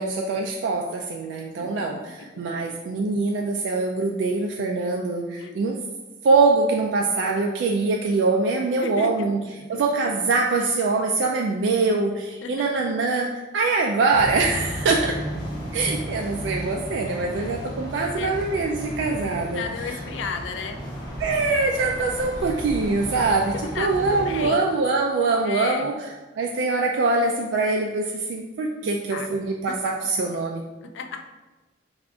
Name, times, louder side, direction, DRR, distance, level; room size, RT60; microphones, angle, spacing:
voice 1, 0.0-5.8 6.2-9.4 9.7-15.2 15.7-20.0 21.2-25.9 26.4-30.6, right 3 dB, 80° right, 1 dB, 0.3 m, -23 dB
voice 2, 2.2-2.6 5.4-5.7 8.8-9.8 12.4-12.7 18.2-18.4 19.5-20.8 23.5-24.7 25.4-25.9 28.8-29.3 29.7-29.8 30.8-31.2, left 6 dB, 80° left, 6 dB, 0.4 m, -34 dB
sound 1, 14.1-24.5, equal, 20° left, 0.8 m, -34 dB
3.4 x 2.4 x 3.6 m, 1.2 s
head